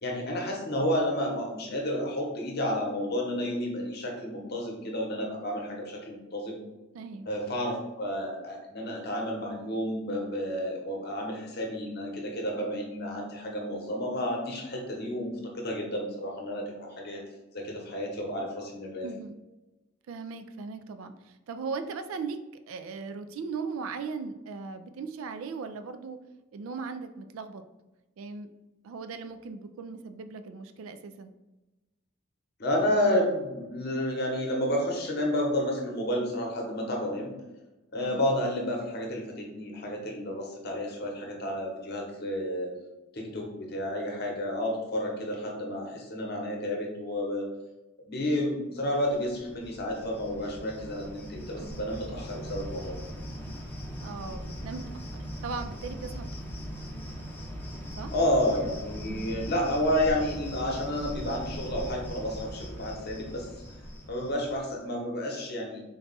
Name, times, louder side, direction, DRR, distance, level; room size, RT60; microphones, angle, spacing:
voice 1, 0.0-6.6 7.3-17.2 17.5-19.1 32.6-37.3 37.9-42.7 43.1-47.5 48.1-53.0 58.1-63.4 64.1-65.8, left 1 dB, 50° left, 0 dB, 0.9 m, -31 dB
voice 2, 6.9-7.3 19.0-19.4 20.1-22.4 22.7-26.2 26.5-27.6 28.2-28.5 28.8-31.3 38.0-38.2 51.6-51.9 54.0-55.0 55.4-56.3 58.0-58.1 59.0-59.4, right 5 dB, 75° right, 9 dB, 0.3 m, -38 dB
Cricket, 49.0-64.7, equal, 10° left, 0.6 m, -40 dB
3.9 x 2.3 x 4.0 m, 1.1 s
head